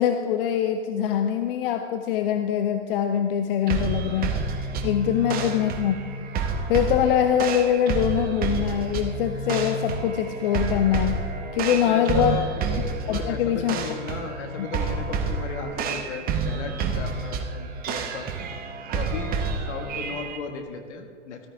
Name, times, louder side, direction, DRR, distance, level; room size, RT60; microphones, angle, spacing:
voice 1, 0.0-4.3 4.8-5.9 6.7-11.2 11.5-12.4 13.1-13.8, left 9 dB, 45° left, 7 dB, 0.7 m, -23 dB
sound 1, 3.7-20.4, right 4 dB, 25° right, 1.1 m, -29 dB
voice 2, 11.7-12.6 13.1-18.3 18.9-19.4 19.7-21.5, left 5 dB, 60° left, 5 dB, 1.8 m, -35 dB
13.5 x 13.5 x 3.6 m, 2.3 s
hypercardioid pair, 120°, 38 cm